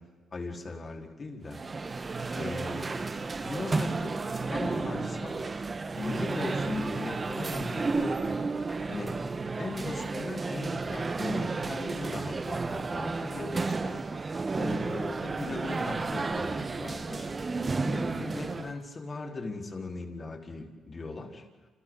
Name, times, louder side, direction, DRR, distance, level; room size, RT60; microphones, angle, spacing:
voice 1, 0.3-1.6 2.3-2.9 3.4-5.5 5.9-8.4 8.9-9.2 9.6-14.1 14.5-17.3 17.8-21.4, left 3 dB, 40° left, 1 dB, 4.7 m, -38 dB
sound 1, 1.4-18.8, right 3 dB, 35° right, 1.4 m, -32 dB
29.5 x 29.0 x 4.1 m, 1.4 s
supercardioid pair, 70°, 0 cm